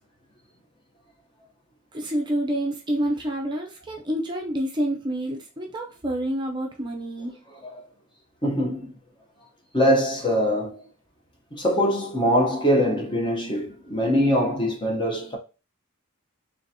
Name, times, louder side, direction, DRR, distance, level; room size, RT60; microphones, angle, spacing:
voice 1, 1.9-7.4, right 1 dB, 20° right, 0.6 m, -28 dB
voice 2, 8.4-8.9 9.7-10.8 11.5-15.4, equal, 20° left, 0.8 m, -23 dB
3.7 x 3.4 x 2.7 m
head